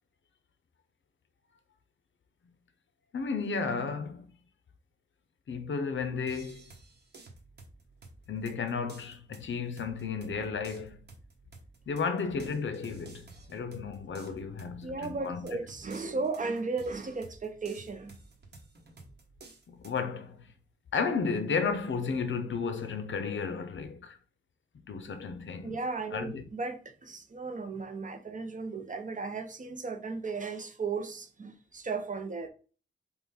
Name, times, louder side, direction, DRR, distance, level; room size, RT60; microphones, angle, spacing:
voice 1, 3.1-4.3 5.5-6.6 8.3-11.0 11.9-15.5 19.7-20.5 20.9-24.2 24.9-25.8 26.1-26.4, left 5 dB, 65° left, 0.6 m, -33 dB
sound 1, 6.3-20.0, right 3 dB, 55° right, 1.1 m, -53 dB
voice 2, 14.8-18.2 25.6-32.5, right 4 dB, 40° right, 0.6 m, -35 dB
5.6 x 2.3 x 4.1 m
wide cardioid pair, 150°, 21 cm